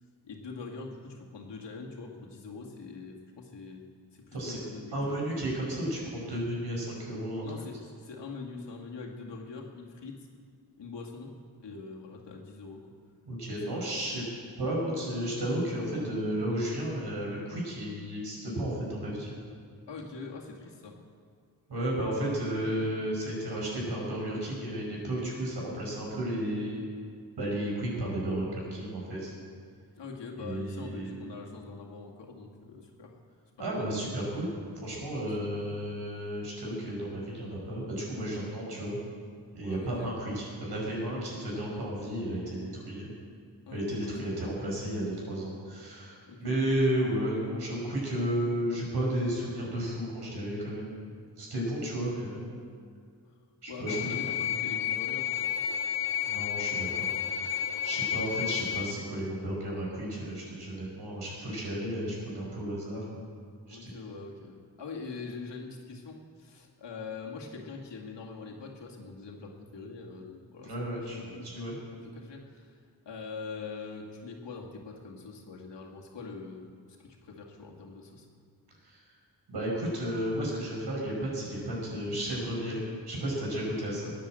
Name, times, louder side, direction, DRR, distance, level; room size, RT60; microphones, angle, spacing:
voice 1, 0.2-3.8 4.1-5.2 7.4-10.3 10.8-11.3 11.6-12.8 13.5-14.2 19.9-20.9 30.0-33.1 33.6-34.0 35.2-35.6 39.6-40.1 43.6-44.5 46.3-46.8 53.7-55.5 63.7-71.5 71.9-72.8 73.1-76.7 77.0-78.3, left 4 dB, 85° left, -1 dB, 2.3 m, -43 dB
voice 2, 4.9-7.5 13.3-14.2 14.6-19.3 21.7-26.8 27.4-29.3 30.4-31.1 33.6-39.0 39.5-43.1 43.7-50.9 51.4-52.5 53.6-54.0 56.2-56.9 57.3-57.6 57.8-63.2 63.7-63.8 70.6-71.8 78.8-79.0 79.5-84.1, right 1 dB, 70° right, -3 dB, 5.5 m, -33 dB
sound 1, 53.9-58.9, left 10 dB, 60° left, 0.9 m, -31 dB
16.5 x 10.0 x 7.7 m, 2.1 s
wide cardioid pair, 130°, 42 cm